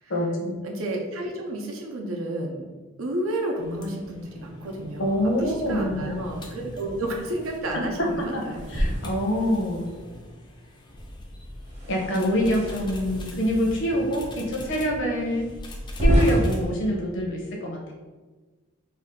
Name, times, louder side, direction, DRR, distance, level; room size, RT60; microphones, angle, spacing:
voice 1, 0.1-0.5 5.0-6.3 8.3-8.4 8.7-9.8 11.9-15.5 16.0-17.9, equal, 65° left, 0 dB, 0.7 m, -25 dB
voice 2, 0.6-2.7 3.0-8.6, right 1 dB, 75° right, 1 dB, 0.6 m, -31 dB
sound 1, 3.6-16.7, left 1 dB, 20° left, 0.3 m, -42 dB
sound 2, 8.5-9.9 11.6-13.1 13.9-14.0 14.6-14.7 15.8-16.7, equal, 35° right, 0.8 m, -26 dB
2.7 x 2.3 x 3.5 m, 1.3 s
head